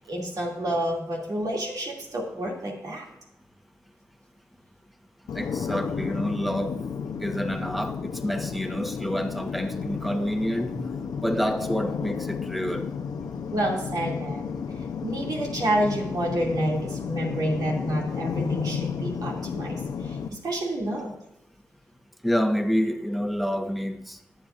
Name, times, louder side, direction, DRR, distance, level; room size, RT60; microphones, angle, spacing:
voice 1, 0.1-3.1 7.5-7.6 13.5-14.5 15.0-21.1, right 1 dB, 70° right, 2.6 m, -29 dB
sound 1, 5.3-20.3, left 6 dB, 80° left, 0.8 m, -32 dB
voice 2, 5.3-6.8 7.2-10.8 11.2-12.9 22.2-24.2, equal, ahead, 1.2 m, -28 dB
19.0 x 7.5 x 2.5 m
cardioid pair, 55°, 7 cm